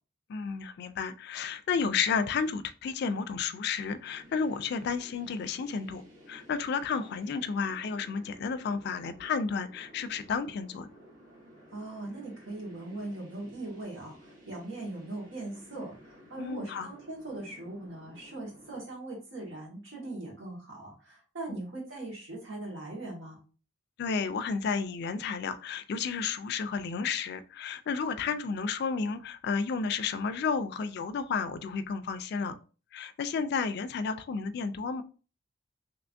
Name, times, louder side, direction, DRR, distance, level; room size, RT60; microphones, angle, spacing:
voice 1, 0.3-6.0 6.3-10.9 16.4-16.9 21.5-21.6 24.0-32.6 32.9-35.0, left 5 dB, 60° left, 12 dB, 0.3 m, -32 dB
sound 1, 3.8-18.8, equal, 45° right, 1.6 m, -54 dB
voice 2, 11.7-23.4, right 2 dB, 80° right, -2 dB, 1.6 m, -40 dB
3.3 x 3.0 x 2.6 m, 0.36 s
head